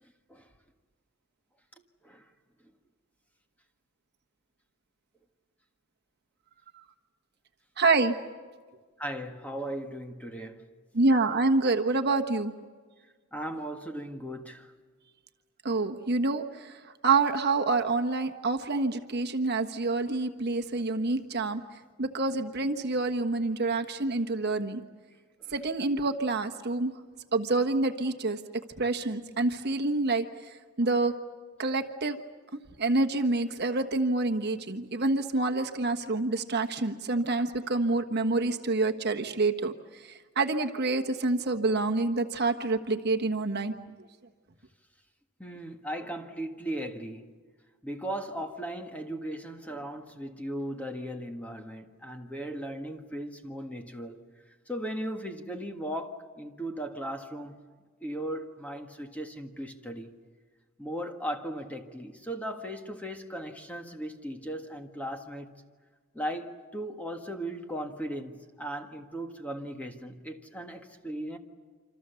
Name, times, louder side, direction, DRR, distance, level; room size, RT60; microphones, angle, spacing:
voice 1, 7.8-8.1 10.9-12.5 15.6-16.7 17.0-21.6 22.0-24.8 25.5-26.9 27.3-28.4 28.8-30.2 30.8-31.1 31.6-32.2 32.8-39.7 40.3-43.7, right 3 dB, 50° right, 5 dB, 1.3 m, -27 dB
voice 2, 9.0-10.6 13.3-14.7 45.4-47.3 47.8-54.2 54.7-57.5 58.0-60.1 60.8-65.5 66.1-71.4, right 1 dB, 5° left, 4 dB, 1.7 m, -37 dB
28.0 x 26.5 x 7.0 m, 1.5 s
head